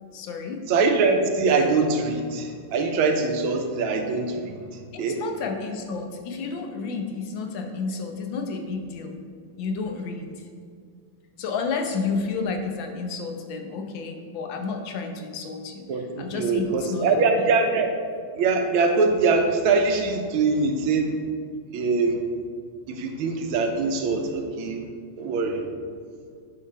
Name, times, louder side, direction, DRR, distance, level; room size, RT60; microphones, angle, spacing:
voice 1, 0.1-0.6 4.9-9.2 9.6-10.3 11.4-17.5, left 4 dB, 70° left, 4 dB, 1.5 m, -31 dB
voice 2, 0.7-4.6 5.0-5.2 15.9-17.9 18.4-21.2 21.7-22.2 22.9-24.9 25.2-25.7, right 4 dB, 85° right, 4 dB, 1.6 m, -23 dB
9.4 x 3.9 x 5.5 m, 2.1 s
omnidirectional pair, 2.3 m